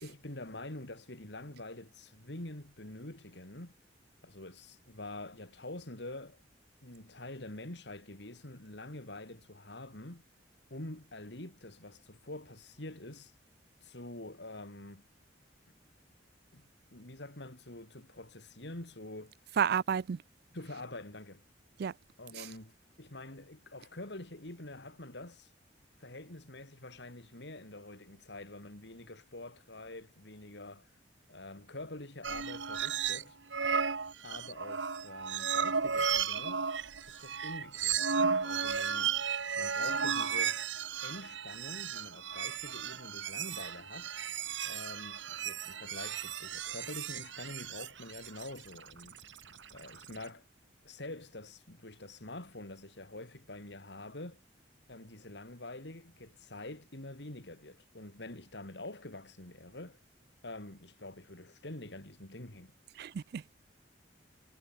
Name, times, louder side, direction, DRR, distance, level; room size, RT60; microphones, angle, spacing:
voice 1, 0.0-3.7 4.2-6.4 6.8-10.2 10.7-13.3 13.8-15.0 16.5-16.6 16.9-19.3 20.5-21.4 22.2-25.5 26.0-30.9 31.3-33.4 34.2-36.7 37.1-38.1 38.4-40.6 41.0-44.1 44.6-49.2 49.7-50.5 50.8-54.4 54.9-60.0 60.4-62.7, left 2 dB, 65° left, 3.3 m, -46 dB
voice 2, 19.6-20.2 21.8-21.9 63.0-63.5, right 7 dB, 60° right, 0.4 m, -31 dB
sound 1, 32.2-33.2 33.5-50.2, right 6 dB, 85° right, 1.7 m, -34 dB
head